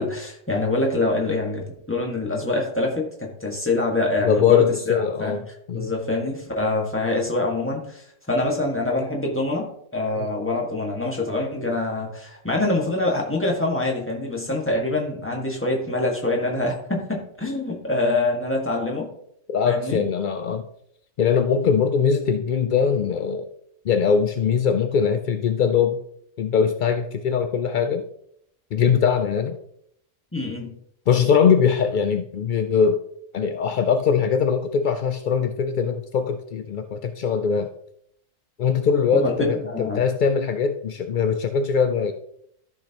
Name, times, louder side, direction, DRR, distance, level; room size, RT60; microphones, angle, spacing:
voice 1, 0.0-5.4 5.7-19.1 19.7-20.0 30.3-30.7 39.1-40.0, left 2 dB, 10° left, -1 dB, 1.6 m, -25 dB
voice 2, 4.2-5.9 10.2-10.3 19.5-20.6 21.2-23.4 23.9-26.0 26.4-28.0 28.7-29.6 31.1-33.0 33.3-37.7 38.6-42.1, left 6 dB, 70° left, 7 dB, 0.4 m, -21 dB
13.5 x 6.0 x 2.9 m, 0.70 s
omnidirectional pair, 1.4 m